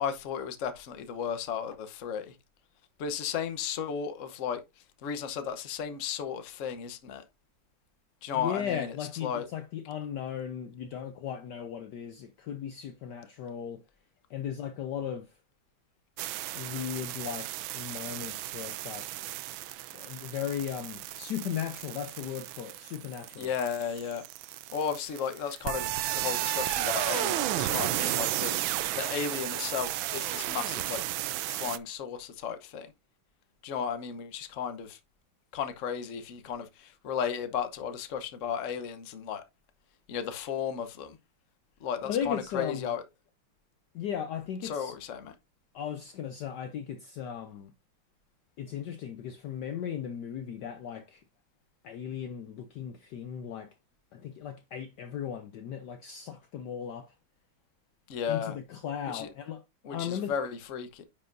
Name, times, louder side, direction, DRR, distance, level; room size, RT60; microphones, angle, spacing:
voice 1, 0.0-2.3 3.0-4.6 5.0-7.2 8.2-8.9 9.2-9.5 23.4-24.2 24.7-28.5 28.9-31.0 31.5-32.9 33.6-35.0 35.5-39.4 40.1-41.2 41.8-43.0 44.6-45.3 58.1-58.6 59.1-59.3 59.8-61.0, left 7 dB, 50° left, 1.0 m, -34 dB
voice 2, 8.3-13.8 14.3-15.3 16.5-19.1 19.9-23.5 42.0-42.9 43.9-44.9 45.7-47.7 48.6-51.2 51.8-53.7 54.1-57.1 58.3-59.6 59.9-60.3, left 9 dB, 70° left, 1.1 m, -36 dB
sound 1, 16.2-31.8, right 14 dB, 75° right, 1.3 m, -33 dB
9.7 x 5.4 x 2.6 m
omnidirectional pair, 2.3 m